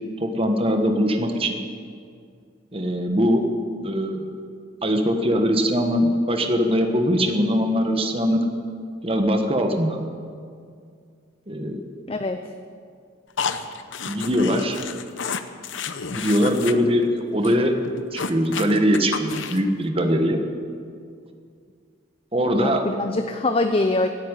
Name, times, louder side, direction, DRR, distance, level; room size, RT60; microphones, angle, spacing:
voice 1, 0.2-1.6 2.7-3.4 3.8-4.3 4.8-8.4 9.0-10.0 11.5-11.9 14.1-14.8 16.1-17.7 18.1-20.4 22.3-22.9, equal, 30° right, 5 dB, 1.3 m, -21 dB
voice 2, 12.1-12.4 22.6-24.1, left 2 dB, 30° left, 7 dB, 0.5 m, -23 dB
sound 1, 13.4-16.7 17.0-17.2 17.4-17.5 17.8-19.7, left 6 dB, 70° left, 0.8 m, -31 dB
15.5 x 8.5 x 9.9 m, 2.3 s
head